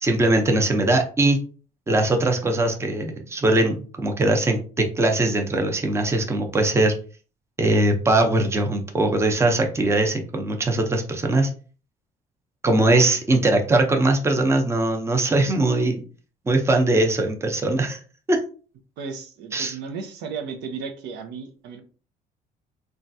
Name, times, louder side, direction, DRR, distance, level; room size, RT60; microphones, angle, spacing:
voice 1, 0.0-1.4 1.9-6.9 7.6-11.5 12.6-16.0 16.5-18.0 18.3-18.4 19.5-19.7, right 2 dB, 15° right, 3 dB, 0.6 m, -21 dB
voice 2, 19.0-21.8, right 5 dB, 85° right, 5 dB, 0.6 m, -34 dB
3.1 x 2.3 x 2.6 m, 0.38 s
cardioid pair, 110°, 17 cm